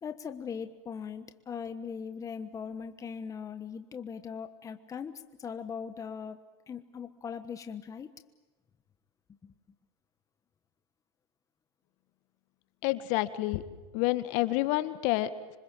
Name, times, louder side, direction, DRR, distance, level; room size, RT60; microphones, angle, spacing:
voice 1, 0.0-6.4 6.7-8.1 9.4-9.5, left 6 dB, 20° left, 9 dB, 1.3 m, -40 dB
voice 2, 12.8-13.6 13.9-15.6, left 16 dB, 55° left, 12 dB, 1.7 m, -29 dB
26.5 x 24.5 x 7.5 m, 1.2 s
supercardioid pair, 120°, 15 cm